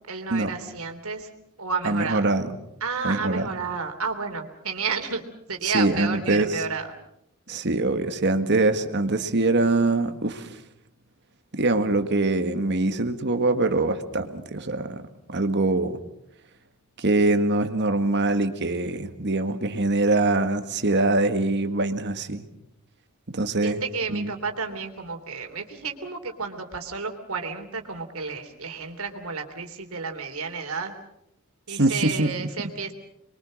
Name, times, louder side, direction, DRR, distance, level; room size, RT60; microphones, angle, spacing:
voice 1, 0.1-1.3 1.6-2.3 2.8-5.2 5.5-6.9 23.6-30.9 31.7-32.9, right 5 dB, 70° right, 5 dB, 3.2 m, -31 dB
voice 2, 1.8-2.5 3.0-3.5 5.6-6.6 7.5-10.5 11.5-15.0 15.3-16.0 17.0-22.5 23.3-23.8 24.1-24.3 31.7-32.5, right 2 dB, 50° right, 8 dB, 1.8 m, -23 dB
27.0 x 23.0 x 6.4 m, 0.79 s
head